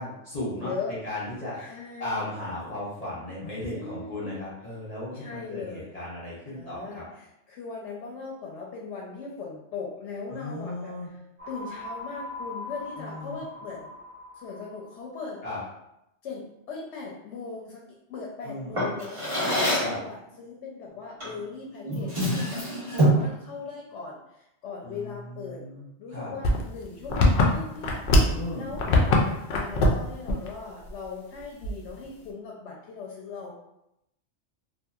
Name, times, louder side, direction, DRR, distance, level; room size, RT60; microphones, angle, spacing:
voice 1, 0.0-7.0 10.3-11.1 13.0-13.4 15.4-15.6 18.4-18.9 19.8-20.0 24.8-26.3 28.3-28.7, left 1 dB, 35° left, -9 dB, 0.9 m, -36 dB
voice 2, 0.6-1.0 1.6-2.2 3.7-4.4 5.1-5.9 6.5-10.9 11.5-13.9 14.4-15.4 16.2-25.6 26.0-28.1 28.5-28.9 29.3-33.5, left 4 dB, 90° left, -3 dB, 0.9 m, -39 dB
sound 1, 11.4-15.0, left 2 dB, 85° right, 1.4 m, -40 dB
Drawer open or close, 18.7-20.0 21.2-21.4 21.8-23.3, equal, 30° right, 1.0 m, -25 dB
sound 2, 26.4-28.4 28.7-29.2 29.5-30.0 30.3-30.5 30.9-31.0 31.6-32.0, left 2 dB, 60° left, 0.6 m, -21 dB
2.7 x 2.6 x 2.3 m, 0.83 s
omnidirectional pair, 1.2 m